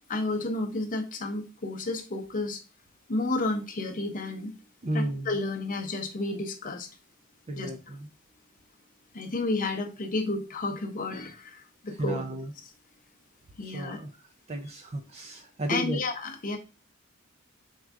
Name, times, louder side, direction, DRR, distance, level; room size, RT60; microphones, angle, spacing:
voice 1, 0.1-2.6 3.1-4.5 4.9-6.9 7.6-7.7 9.1-12.2 13.6-14.0 15.7-16.6, left 2 dB, 40° left, 4 dB, 0.7 m, -31 dB
voice 2, 4.8-5.3 7.5-8.1 11.9-12.5 13.6-16.0, right 1 dB, 30° right, 3 dB, 0.4 m, -33 dB
4.5 x 2.4 x 3.6 m, 0.31 s
head